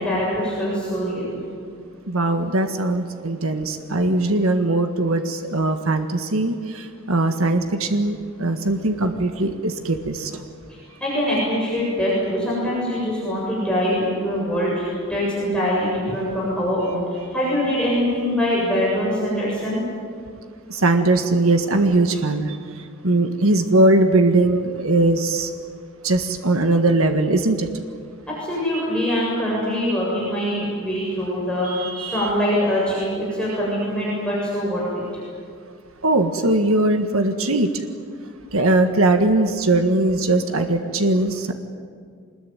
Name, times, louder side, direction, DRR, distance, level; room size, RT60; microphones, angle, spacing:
voice 1, 0.0-1.4 10.7-19.8 28.3-34.8 35.1-35.2, equal, 5° left, -6 dB, 7.4 m, -23 dB
voice 2, 2.1-10.4 20.7-22.6 23.0-25.5 26.0-27.7 31.6-32.3 36.0-37.7 38.5-41.5, right 2 dB, 85° right, 6 dB, 1.6 m, -20 dB
24.5 x 21.0 x 9.4 m, 2.1 s
head